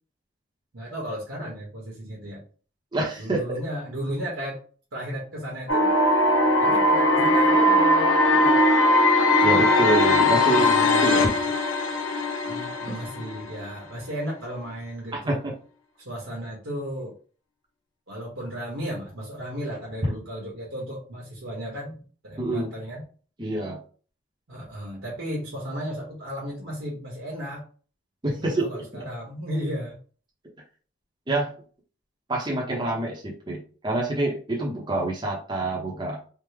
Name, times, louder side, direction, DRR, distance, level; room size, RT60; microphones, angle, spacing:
voice 1, 0.7-2.4 3.2-4.6 4.9-5.9 6.6-8.6 10.5-11.3 12.5-15.4 16.0-17.1 18.1-23.0 24.5-27.7 28.4-30.0, equal, 70° right, -3 dB, 1.0 m, -34 dB
voice 2, 2.9-3.6 9.4-10.7 11.0-11.3 15.1-15.5 22.4-22.7 23.4-23.8 28.2-29.1 31.3-31.5 32.3-36.3, right 2 dB, 20° right, -2 dB, 0.6 m, -27 dB
sound 1, 5.7-13.7, left 1 dB, 75° left, 0.6 m, -20 dB
3.4 x 2.0 x 3.2 m, 0.40 s
head